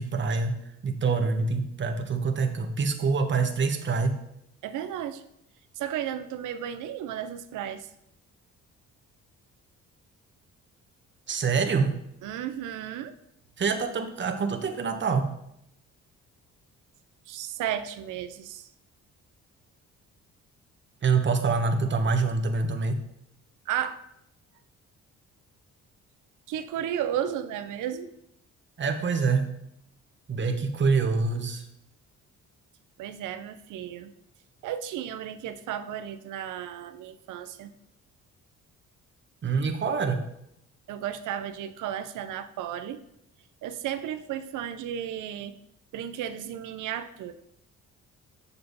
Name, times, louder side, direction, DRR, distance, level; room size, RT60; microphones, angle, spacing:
voice 1, 0.0-4.1 11.3-12.0 13.6-15.3 21.0-23.0 28.8-29.5 30.3-31.6 39.4-40.2, right 4 dB, 40° right, 5 dB, 1.1 m, -26 dB
voice 2, 4.6-5.2 5.8-7.9 12.2-13.1 17.3-18.7 23.7-24.0 26.5-28.1 33.0-34.1 34.6-37.7 40.9-43.0 43.6-45.6 45.9-47.3, right 10 dB, 85° right, 11 dB, 0.7 m, -34 dB
6.9 x 6.7 x 4.0 m, 0.78 s
cardioid pair, 90°, 30 cm